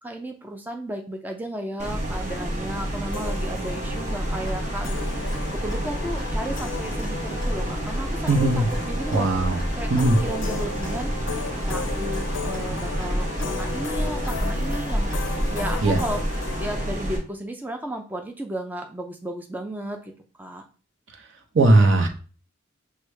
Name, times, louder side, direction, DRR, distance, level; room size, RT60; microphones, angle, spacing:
voice 1, 0.0-9.9 10.2-11.1 11.7-15.1 15.5-20.1 20.4-20.6, right 1 dB, 10° right, 3 dB, 0.3 m, -34 dB
sound 1, 1.8-17.2, right 1 dB, 40° right, 0.9 m, -30 dB
sound 2, 3.1-16.9, left 5 dB, 65° left, 0.4 m, -36 dB
Clock, 4.2-16.3, equal, 20° left, 1.4 m, -34 dB
voice 2, 8.3-8.6 9.1-9.6 9.9-10.2 15.8-16.0 21.5-22.1, right 2 dB, 70° right, 4 dB, 0.7 m, -18 dB
6.2 x 2.2 x 3.2 m, 0.38 s
head